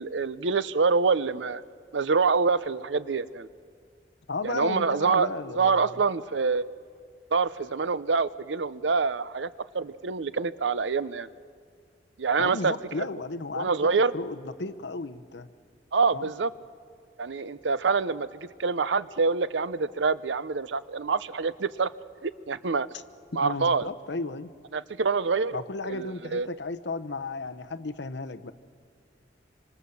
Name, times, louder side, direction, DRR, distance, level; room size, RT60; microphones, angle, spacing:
voice 1, 0.0-1.6 1.9-3.5 4.4-6.6 7.3-9.5 9.7-11.3 12.2-13.1 13.6-14.1 15.9-16.5 17.2-21.9 22.2-22.9 23.3-23.9 24.7-26.5, right 4 dB, 85° right, 16 dB, 0.7 m, -26 dB
voice 2, 4.3-5.9 12.4-15.5 16.1-16.3 23.4-24.5 25.5-28.5, left 3 dB, 75° left, 10 dB, 0.9 m, -34 dB
25.5 x 25.5 x 7.1 m, 2.1 s
head